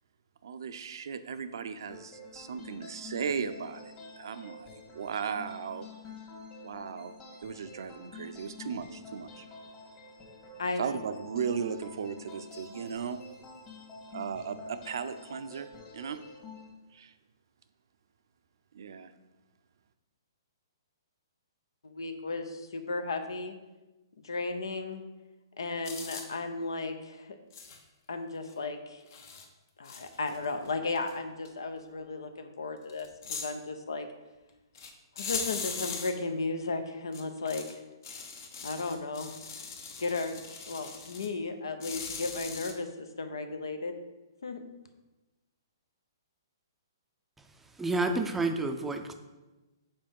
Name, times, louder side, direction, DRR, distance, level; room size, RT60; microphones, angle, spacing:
voice 1, 0.4-5.9 6.6-7.1 7.4-9.4 10.8-13.2 14.1-15.7 15.9-16.2 16.9-17.1 18.7-19.1, right 6 dB, 70° right, 10 dB, 0.5 m, -36 dB
sound 1, 1.9-16.7, left 4 dB, 30° left, 1.7 m, -48 dB
voice 2, 10.6-11.0 21.8-23.5 24.2-25.0 25.6-27.4 28.1-29.0 29.8-34.1 35.2-37.8 38.6-39.3 40.0-40.4 40.7-43.9 44.4-44.6, left 3 dB, 80° left, 7 dB, 0.8 m, -35 dB
sound 2, 25.8-26.3 27.5-27.8 28.5-28.6 29.1-29.5 29.8-30.7 31.0-31.1 31.5-31.6 32.9-33.5 34.7-34.9 35.2-36.1 37.1-37.7 38.0-41.3 41.8-42.7, left 5 dB, 50° left, 1.0 m, -40 dB
voice 3, 47.6-49.1, right 2 dB, 5° right, 5 dB, 0.5 m, -30 dB
5.3 x 4.3 x 5.3 m, 1.1 s
hypercardioid pair, 140°, 2 cm